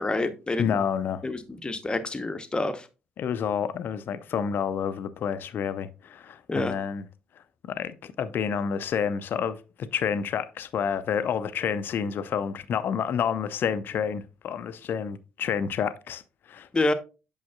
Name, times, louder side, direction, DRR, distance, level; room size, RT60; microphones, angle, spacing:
voice 1, 0.0-0.8 1.2-2.9 6.5-6.8 16.7-16.9, left 2 dB, 20° left, 0.9 m, -27 dB
voice 2, 0.6-1.2 3.2-7.1 7.7-16.2 16.5-16.7, left 7 dB, 45° left, 0.6 m, -29 dB
8.5 x 6.4 x 2.3 m
figure-of-eight pair, 50°, 5 cm